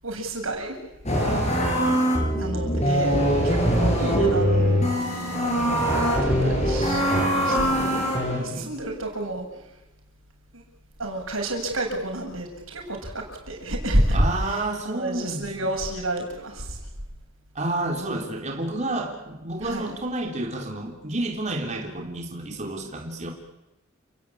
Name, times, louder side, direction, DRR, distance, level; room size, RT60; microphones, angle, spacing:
voice 1, 0.0-0.8 2.3-7.0 7.4-8.0 8.3-9.7 10.5-10.6 11.0-16.8 19.6-19.9, right 1 dB, 85° right, 2 dB, 7.2 m, -30 dB
sound 1, 1.1-8.4, equal, 35° left, 7.6 m, -22 dB
voice 2, 1.1-1.5 7.4-7.9 8.3-8.7 14.1-15.7 17.6-23.3, right 2 dB, 35° right, 1 dB, 3.6 m, -30 dB
30.0 x 19.0 x 8.6 m, 0.98 s
head